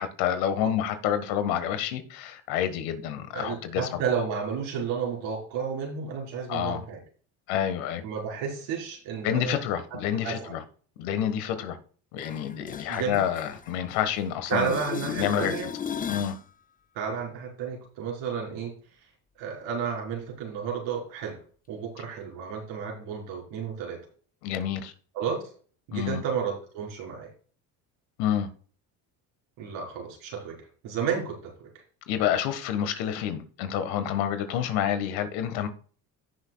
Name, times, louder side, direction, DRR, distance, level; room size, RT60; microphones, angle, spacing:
voice 1, 0.0-4.0 6.5-6.8 7.5-8.0 9.2-10.6 11.0-11.8 12.1-15.7 16.1-16.4 24.4-24.9 25.9-26.2 28.2-28.5 32.1-35.7, left 9 dB, 80° left, 1.6 m, -28 dB
voice 2, 3.3-7.0 8.0-9.6 10.1-10.5 12.9-13.2 14.5-15.7 16.9-18.7 19.4-21.4 21.7-24.0 25.1-25.5 25.9-27.3 29.6-31.7, right 6 dB, 75° right, 4.4 m, -32 dB
sound 1, 12.2-14.2 14.5-16.4 22.2-22.3, left 7 dB, 20° left, 0.5 m, -36 dB
16.5 x 6.4 x 2.3 m
hypercardioid pair, 70°, 45 cm